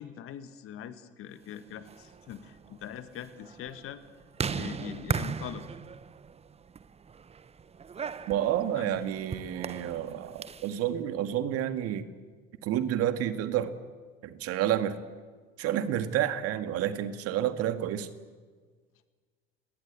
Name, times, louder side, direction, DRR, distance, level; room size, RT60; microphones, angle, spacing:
voice 1, 0.0-4.0 4.5-5.7 8.7-9.0, left 9 dB, 45° left, 11 dB, 1.8 m, -42 dB
sound 1, 1.7-10.8, right 6 dB, 20° right, 0.9 m, -38 dB
voice 2, 8.3-12.1 12.6-13.7 14.2-15.0 15.6-18.1, right 11 dB, 50° right, 10 dB, 1.9 m, -29 dB
29.5 x 18.0 x 8.4 m, 1.5 s
hypercardioid pair, 75°, 31 cm